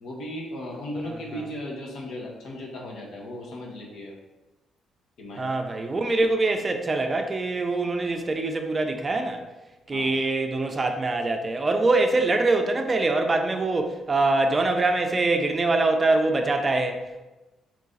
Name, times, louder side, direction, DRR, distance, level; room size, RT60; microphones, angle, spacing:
voice 1, 0.0-4.1 5.2-5.5 9.9-10.2, left 1 dB, 70° left, -1 dB, 1.0 m, -36 dB
voice 2, 5.4-9.4 9.9-17.2, right 2 dB, 30° right, 5 dB, 0.5 m, -24 dB
3.7 x 3.1 x 3.9 m, 1.1 s
cardioid pair, 90°, 0 cm